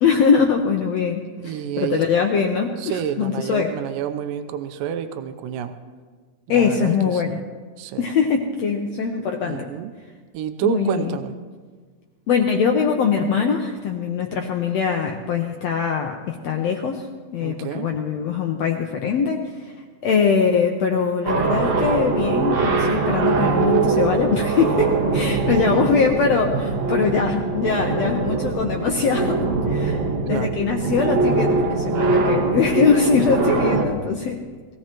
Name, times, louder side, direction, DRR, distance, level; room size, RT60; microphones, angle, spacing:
voice 1, 0.0-3.8 6.5-7.4 8.0-9.7 10.6-11.2 12.3-17.0 17.3-19.7 20.0-34.4, left 6 dB, 80° left, 2 dB, 1.5 m, -22 dB
voice 2, 1.4-2.0 2.8-5.7 6.5-7.5 7.8-8.0 9.4-9.9 10.3-11.3 17.4-17.9 30.3-30.6, right 9 dB, 85° right, 9 dB, 2.3 m, -28 dB
sound 1, 21.2-33.8, right 4 dB, 60° right, 1.2 m, -22 dB
21.0 x 15.5 x 3.0 m, 1.5 s
omnidirectional pair, 3.9 m